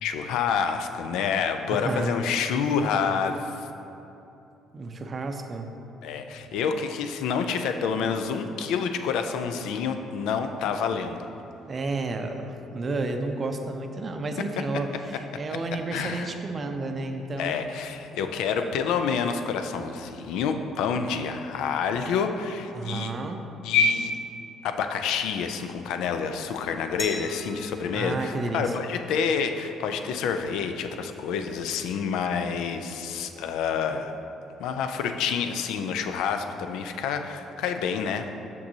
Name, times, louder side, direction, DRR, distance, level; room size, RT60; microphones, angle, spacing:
voice 1, 0.0-3.7 6.0-11.2 15.9-16.3 17.4-23.1 23.6-24.2 24.6-34.1 34.6-38.3, left 6 dB, 75° left, 7 dB, 0.3 m, -28 dB
voice 2, 1.7-2.2 4.7-5.7 11.7-17.6 22.7-23.4 27.9-28.7, right 2 dB, 40° right, 5 dB, 0.5 m, -31 dB
Glass, 27.0-29.7, left 1 dB, 20° left, 0.7 m, -42 dB
6.1 x 5.9 x 2.7 m, 2.8 s
hypercardioid pair, 60°, 0 cm